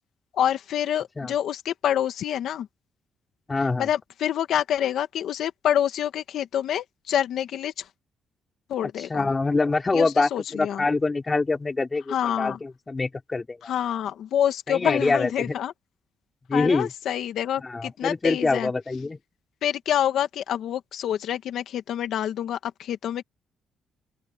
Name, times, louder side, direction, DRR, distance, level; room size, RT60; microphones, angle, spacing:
voice 1, 0.3-2.7 3.8-7.9 8.7-9.3 9.9-10.8 12.1-12.6 13.7-15.7 16.5-18.7 19.6-23.2, left 10 dB, 70° left, 1.9 m, -27 dB
voice 2, 3.5-3.9 9.1-13.7 14.7-15.5 16.5-16.9 17.6-19.2, left 3 dB, 25° left, 5.1 m, -25 dB
open air
cardioid pair, 105°, 0 cm